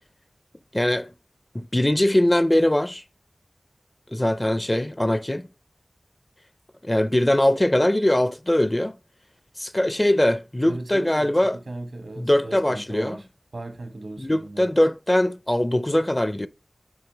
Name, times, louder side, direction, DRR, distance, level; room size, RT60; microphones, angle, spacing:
voice 1, 0.7-1.1 1.5-3.0 4.1-5.5 6.8-8.9 9.6-11.6 12.2-13.2 14.2-16.5, left 1 dB, 25° left, 0.4 m, -21 dB
voice 2, 10.7-13.3 13.5-14.7, right 2 dB, 80° right, 1.1 m, -37 dB
8.8 x 3.3 x 3.2 m
wide cardioid pair, 45°, 0 cm